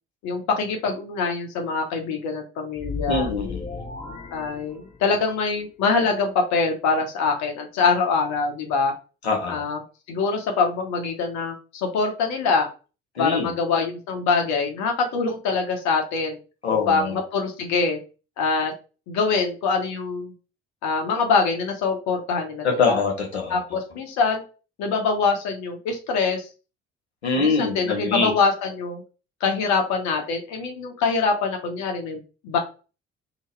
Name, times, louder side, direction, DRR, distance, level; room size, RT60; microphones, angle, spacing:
voice 1, 0.2-3.3 4.3-8.9 9.5-9.8 10.1-12.7 13.2-16.4 16.9-18.0 18.4-18.7 19.1-20.3 20.8-23.0 23.5-24.4 24.8-26.5 27.4-29.0 29.4-32.6, left 4 dB, 60° left, 3 dB, 1.0 m, -24 dB
sound 1, 2.7-5.3, left 4 dB, 25° left, 1.1 m, -35 dB
voice 2, 3.1-3.9 9.2-9.6 13.1-13.5 16.6-17.1 22.6-23.6 27.2-28.3, left 4 dB, 85° left, 0 dB, 1.0 m, -24 dB
2.9 x 2.8 x 4.4 m, 0.34 s
figure-of-eight pair, 50°, 32 cm